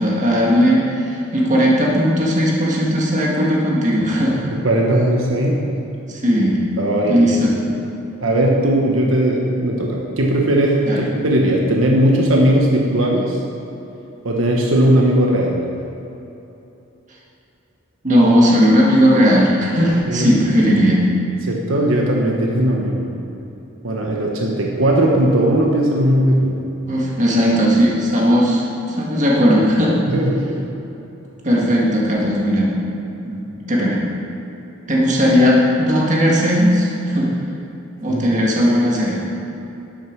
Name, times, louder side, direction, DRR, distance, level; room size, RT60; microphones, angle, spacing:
voice 1, 0.0-4.4 6.1-6.6 7.1-7.6 10.9-11.0 18.0-21.1 26.9-29.9 31.4-32.7 33.2-33.4 33.7-34.0 34.9-37.3 38.0-39.2, equal, 35° right, -4 dB, 1.9 m, -16 dB
voice 2, 4.5-5.6 6.8-7.2 8.2-13.4 14.2-15.6 20.1-20.3 21.4-23.1 23.8-26.5 30.1-30.6 38.1-38.3, right 1 dB, 75° right, -1 dB, 1.2 m, -18 dB
11.5 x 9.1 x 4.7 m, 3.0 s
head